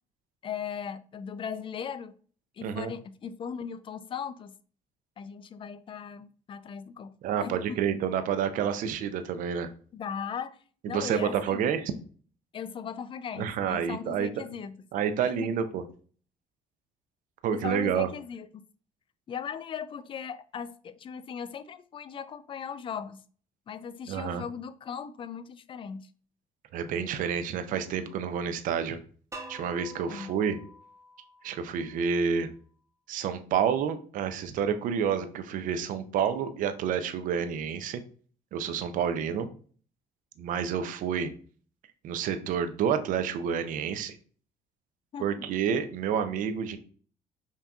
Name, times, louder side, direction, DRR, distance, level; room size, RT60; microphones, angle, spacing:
voice 1, 0.4-2.1 2.6-4.5 5.2-7.1 7.4-7.8 9.9-10.6 10.9-11.6 12.5-14.8 15.2-15.5 17.5-18.6 19.3-23.2 23.7-26.1 30.1-30.3 45.1-45.4, left 7 dB, 35° left, 0.4 m, -38 dB
voice 2, 2.6-2.9 7.2-9.7 10.8-11.9 13.4-14.3 14.9-15.8 17.4-18.1 24.1-24.4 26.7-29.0 29.5-30.6 31.4-32.5 33.1-38.0 38.5-39.5 40.4-41.3 42.0-44.2 45.2-46.8, right 7 dB, 65° right, 0.5 m, -29 dB
sound 1, 29.3-32.2, right 1 dB, 20° right, 0.8 m, -47 dB
5.8 x 2.8 x 2.3 m
supercardioid pair, 90°, 15 cm